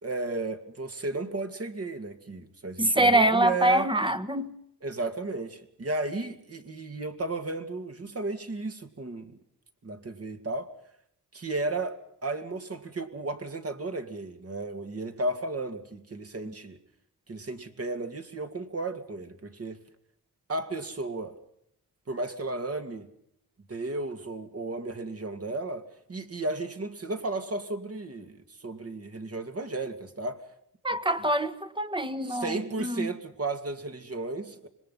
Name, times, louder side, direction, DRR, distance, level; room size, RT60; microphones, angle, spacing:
voice 1, 0.0-3.9 4.8-9.4 9.8-10.7 11.3-16.8 17.3-19.8 20.5-21.4 22.1-23.1 23.7-30.4 31.2-31.3 32.2-34.7, right 2 dB, 40° right, 2.5 m, -34 dB
voice 2, 2.8-4.5 16.4-16.5 30.8-33.1, right 1 dB, 15° right, 1.5 m, -25 dB
26.0 x 21.5 x 5.6 m
cardioid pair, 95°, 37 cm